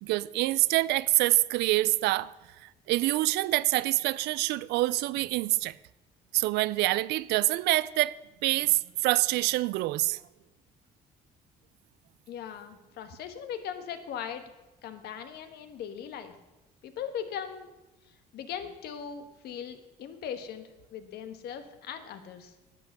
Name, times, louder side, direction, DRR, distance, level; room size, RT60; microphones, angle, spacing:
voice 1, 0.0-2.3 2.6-5.8 6.3-8.1 8.4-10.2, right 18 dB, 85° right, 0.4 m, -26 dB
voice 2, 12.3-14.4 14.8-16.3 16.8-17.7 18.3-22.5, left 8 dB, 75° left, 1.3 m, -39 dB
11.0 x 8.3 x 6.6 m
cardioid pair, 110°, 17 cm